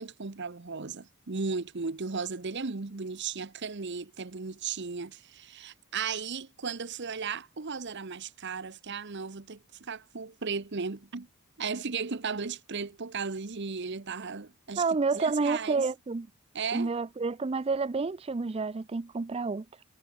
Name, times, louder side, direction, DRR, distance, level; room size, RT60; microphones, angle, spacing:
voice 1, 0.0-11.3 11.6-14.8 15.2-15.9 16.5-16.9, right 5 dB, 55° right, 1.0 m, -35 dB
voice 2, 14.8-16.3 16.7-19.8, right 4 dB, 25° right, 0.4 m, -29 dB
head